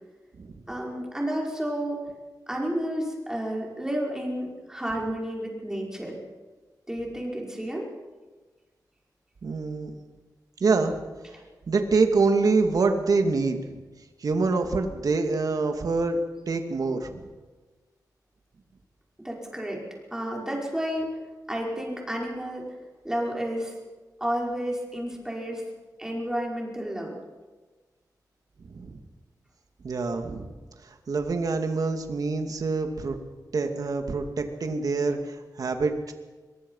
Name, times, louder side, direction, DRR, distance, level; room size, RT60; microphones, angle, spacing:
voice 1, 0.7-2.0 2.5-6.2 6.9-7.9 19.2-19.8 20.1-21.1 21.5-22.7 23.0-23.7 24.2-25.6 26.0-27.2, equal, 10° right, -2 dB, 5.3 m, -31 dB
voice 2, 9.4-9.9 10.6-11.0 11.7-13.8 14.2-16.2 16.5-17.2 28.7-29.0 29.8-30.5 30.8-33.1 33.5-36.1, right 4 dB, 60° right, 5 dB, 2.5 m, -25 dB
24.0 x 22.5 x 5.7 m, 1.3 s
wide cardioid pair, 150°, 7 cm